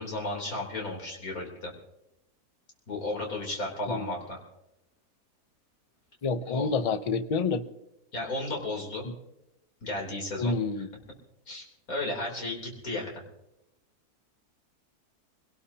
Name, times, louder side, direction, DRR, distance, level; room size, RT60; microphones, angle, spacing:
voice 1, 0.0-1.7 2.9-4.4 6.4-7.0 8.1-9.1 9.8-10.8 11.5-13.2, left 2 dB, 65° left, -1 dB, 3.8 m, -34 dB
voice 2, 6.2-7.6 9.0-9.1 10.4-10.9, left 4 dB, 40° left, 11 dB, 0.5 m, -28 dB
24.5 x 18.0 x 2.8 m, 0.87 s
omnidirectional pair, 1.6 m